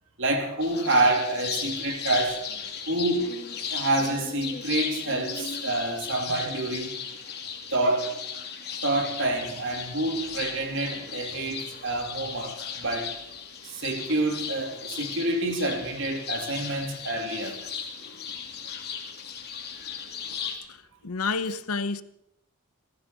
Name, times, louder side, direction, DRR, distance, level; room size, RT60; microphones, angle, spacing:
voice 1, 0.2-2.5 2.9-3.3 3.7-7.0 7.7-8.2 8.8-13.1 13.6-17.6, right 2 dB, 60° right, 3.0 m, -27 dB
sound 1, 0.6-20.6, left 7 dB, 50° left, 2.6 m, -36 dB
voice 2, 21.0-22.0, left 4 dB, 85° left, 0.9 m, -28 dB
15.5 x 15.0 x 6.0 m
head